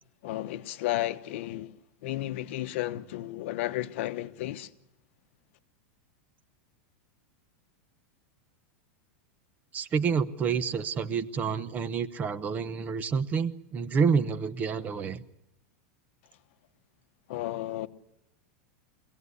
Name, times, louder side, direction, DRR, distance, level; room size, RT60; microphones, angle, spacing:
voice 1, 0.2-1.7 2.0-4.7 17.3-17.9, left 15 dB, 60° left, 1.1 m, -33 dB
voice 2, 9.7-15.2, right 6 dB, 20° right, 0.8 m, -28 dB
24.0 x 17.0 x 9.7 m
supercardioid pair, 160°, 7 cm